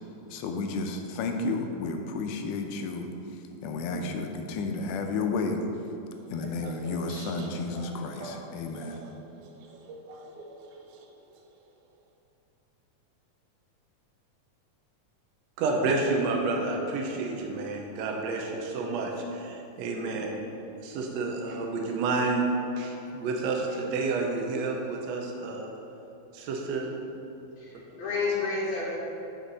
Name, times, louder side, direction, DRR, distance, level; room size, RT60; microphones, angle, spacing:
voice 1, 0.3-3.1 3.6-5.6 6.3-9.0, left 3 dB, 85° left, 4 dB, 2.2 m, -32 dB
sound 1, 6.1-11.7, right 3 dB, 90° right, 2.2 m, -45 dB
voice 2, 15.6-20.4 20.8-22.4 22.7-25.7 26.3-26.9, right 3 dB, 70° right, 1 dB, 1.7 m, -30 dB
voice 3, 27.5-29.0, left 4 dB, 65° left, -8 dB, 2.9 m, -30 dB
8.4 x 5.6 x 3.9 m, 3.0 s
omnidirectional pair, 3.5 m